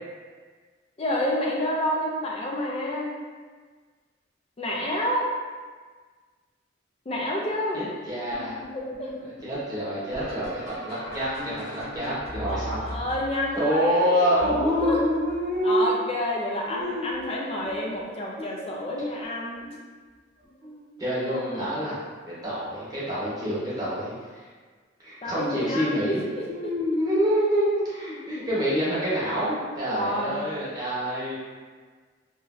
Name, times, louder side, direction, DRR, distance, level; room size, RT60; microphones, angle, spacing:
voice 1, 1.0-3.1 4.6-5.3 7.1-7.9 8.7-9.1 12.5-15.0 15.6-19.8 21.2-21.7 25.2-26.7 29.9-30.4, left 1 dB, 30° left, -2 dB, 0.4 m, -29 dB
voice 2, 7.7-8.5 9.4-12.9 13.5-15.9 16.7-17.1 17.6-17.8 18.4-18.6 20.6-22.0 22.3-24.5 25.0-31.3, equal, 20° right, -10 dB, 0.9 m, -27 dB
sound 1, 8.3-16.0 16.7-17.2 17.6-18.3 19.5-19.6 20.4-20.7 22.9-23.0 25.3-25.4, left 1 dB, 50° left, 1.0 m, -40 dB
3.0 x 2.5 x 2.4 m, 1.5 s
head